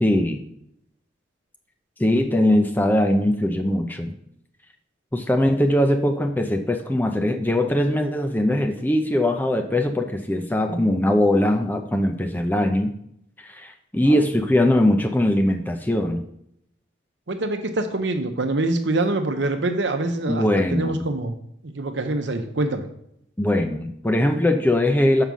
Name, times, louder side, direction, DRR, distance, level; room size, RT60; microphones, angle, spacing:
voice 1, 0.0-0.4 2.0-4.1 5.1-12.9 13.4-16.2 20.3-21.0 23.4-25.2, left 1 dB, 10° left, 4 dB, 0.5 m, -21 dB
voice 2, 17.3-20.5 20.7-21.3 21.6-22.9, right 2 dB, 65° right, 6 dB, 0.9 m, -25 dB
5.7 x 5.4 x 6.2 m, 0.73 s
head